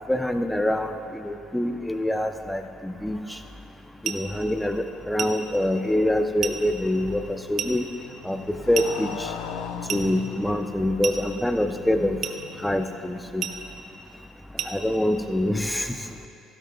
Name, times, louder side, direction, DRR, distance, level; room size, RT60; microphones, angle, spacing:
voice 1, 0.1-3.4 4.0-7.9 8.2-9.3 9.9-12.2 12.6-13.4 14.7-15.9, left 1 dB, 5° left, 8 dB, 0.7 m, -25 dB
sound 1, 4.0-4.3 5.2-5.4 6.4-6.7 7.6-7.8 8.7-9.0 9.9-10.1 11.0-11.3 12.2-12.5 13.4-13.7 14.6-14.8, right 8 dB, 50° right, 0.6 m, -31 dB
Motorcycle, 5.9-13.6, left 7 dB, 60° left, 0.5 m, -40 dB
16.5 x 10.0 x 2.3 m, 2.9 s
figure-of-eight pair, 55°, 0 cm